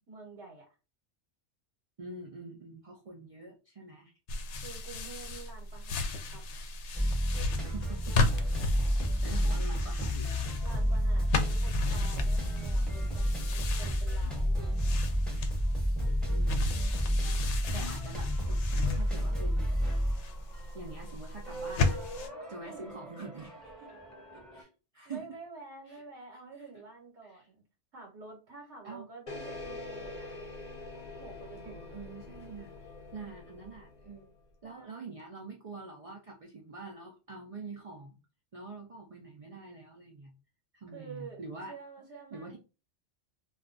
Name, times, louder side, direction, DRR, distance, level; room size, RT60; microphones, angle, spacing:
voice 1, 0.1-0.7 4.6-6.4 10.6-15.1 22.6-22.9 23.8-24.0 25.0-27.5 27.9-30.5 31.2-31.9 34.6-35.1 40.9-42.6, right 4 dB, 75° right, 0 dB, 1.2 m, -49 dB
voice 2, 2.0-4.1 7.7-8.2 9.2-10.5 16.3-16.9 17.7-19.9 20.7-22.1 22.5-23.7 24.5-24.7 24.9-25.4 25.9-26.0 27.2-27.4 28.8-29.1 31.7-32.7 33.1-34.3 34.6-38.2 38.5-40.3 40.7-41.8 42.3-42.6, right 3 dB, 50° right, 1 dB, 0.4 m, -45 dB
sound 1, 4.3-22.3, left 3 dB, 75° left, 0.9 m, -35 dB
sound 2, 6.9-24.6, equal, ahead, 0.7 m, -31 dB
sound 3, 29.3-34.3, left 2 dB, 45° left, 0.7 m, -44 dB
2.5 x 2.2 x 3.7 m, 0.31 s
omnidirectional pair, 1.2 m